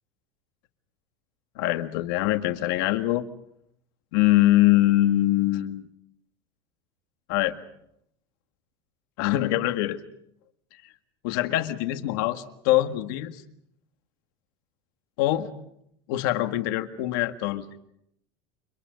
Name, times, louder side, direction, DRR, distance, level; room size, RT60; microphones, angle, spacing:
voice 1, 1.6-3.2 4.1-5.8 7.3-7.6 9.2-10.0 11.2-13.4 15.2-15.5 16.1-17.6, left 15 dB, 60° left, 8 dB, 1.8 m, -23 dB
29.5 x 26.0 x 5.3 m, 0.75 s
supercardioid pair, 175°, 13 cm